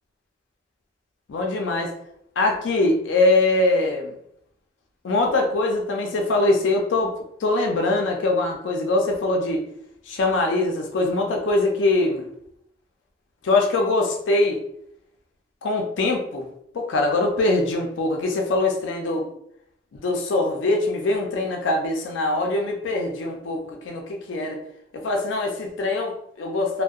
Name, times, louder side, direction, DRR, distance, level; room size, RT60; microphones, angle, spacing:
voice 1, 1.3-1.9 2.4-4.1 5.0-7.1 7.4-9.6 10.1-12.2 13.4-14.6 15.6-16.4 16.7-19.3 19.9-24.6 24.9-26.8, left 2 dB, 75° left, 1 dB, 0.4 m, -22 dB
2.6 x 2.1 x 2.3 m, 0.72 s
head